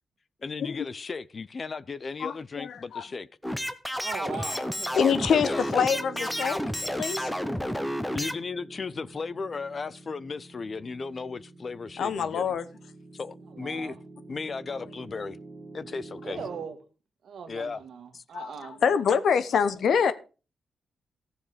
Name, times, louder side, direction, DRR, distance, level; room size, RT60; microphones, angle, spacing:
voice 1, 0.4-3.3 5.4-5.6 8.1-12.5 13.1-13.9 14.3-15.4 15.7-16.4 17.5-17.8 18.1-18.2, left 4 dB, 40° left, 0.6 m, -35 dB
voice 2, 2.2-3.1 4.4-4.6 4.9-7.3 12.0-12.7 18.3-20.1, left 7 dB, 70° left, 1.0 m, -26 dB
sound 1, 3.4-8.4, equal, 5° left, 0.9 m, -31 dB
voice 3, 3.9-5.0 13.5-14.0 16.2-16.8 17.2-19.0, right 6 dB, 70° right, 1.9 m, -39 dB
Piano, 5.6-16.6, right 2 dB, 15° right, 2.2 m, -47 dB
14.5 x 6.7 x 5.0 m
cardioid pair, 115°, 0 cm